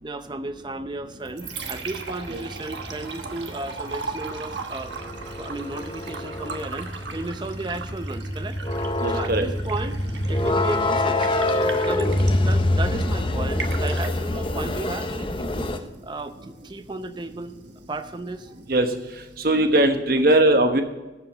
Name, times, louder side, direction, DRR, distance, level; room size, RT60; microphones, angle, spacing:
voice 1, 0.0-5.0 5.4-8.6 9.1-10.0 10.3-17.6 17.9-18.6, right 2 dB, 25° right, 10 dB, 0.6 m, -34 dB
Liquid, 1.0-20.1, right 5 dB, 80° right, 1.1 m, -40 dB
sound 1, 1.5-15.8, left 1 dB, 30° left, 0.7 m, -26 dB
voice 2, 9.0-9.5 18.7-18.9 19.4-20.8, right 1 dB, 55° right, 6 dB, 1.1 m, -19 dB
13.0 x 5.2 x 7.3 m, 1.1 s
head